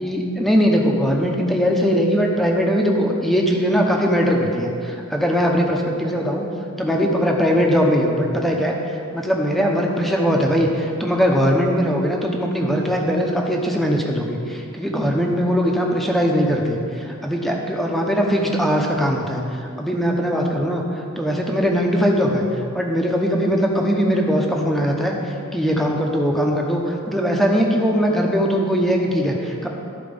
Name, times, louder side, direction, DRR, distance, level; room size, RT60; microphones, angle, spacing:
voice 1, 0.0-6.5 6.8-8.8 9.1-19.4 19.8-22.5 22.7-29.7, equal, ahead, 0 dB, 0.8 m, -20 dB
12.5 x 4.5 x 5.2 m, 2.5 s
head